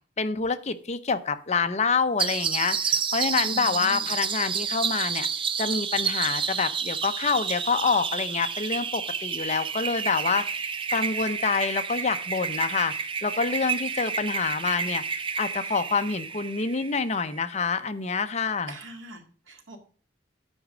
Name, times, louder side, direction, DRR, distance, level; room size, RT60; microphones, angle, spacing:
voice 1, 0.2-5.3 5.6-12.9 13.2-18.8, left 5 dB, 35° left, 10 dB, 0.7 m, -27 dB
sound 1, 2.2-17.4, right 6 dB, 25° right, 0.5 m, -30 dB
voice 2, 3.5-4.1 18.7-19.8, right 1 dB, 90° right, 4 dB, 2.1 m, -43 dB
9.9 x 4.9 x 6.2 m, 0.43 s
head